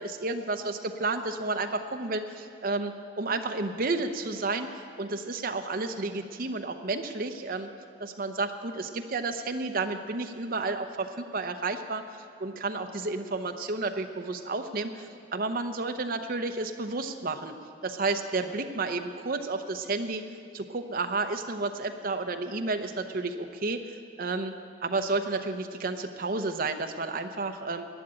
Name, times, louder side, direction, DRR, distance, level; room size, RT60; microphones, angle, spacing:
voice 1, 0.0-7.7 8.0-17.5 17.8-20.2 20.5-24.5 24.8-27.9, right 3 dB, 50° right, 6 dB, 0.8 m, -31 dB
11.5 x 9.9 x 8.9 m, 2.3 s
head